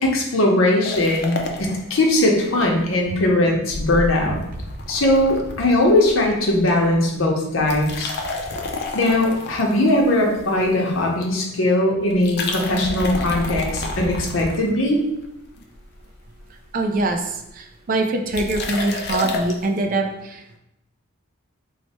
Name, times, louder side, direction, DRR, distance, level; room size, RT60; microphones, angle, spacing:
voice 1, 0.0-4.4 4.9-8.1 8.9-15.0, left 1 dB, 80° left, 0 dB, 0.7 m, -19 dB
sound 1, 0.8-2.7 3.0-3.1 3.7-6.6 6.8-7.1 7.6-10.9 12.1-15.1 15.6-16.1 16.4-16.5 16.7-16.8 16.9-17.2 18.3-19.7, left 2 dB, 55° left, 0.5 m, -30 dB
voice 2, 16.7-20.4, right 2 dB, 45° right, 4 dB, 0.4 m, -23 dB
3.2 x 2.1 x 4.1 m, 0.85 s
head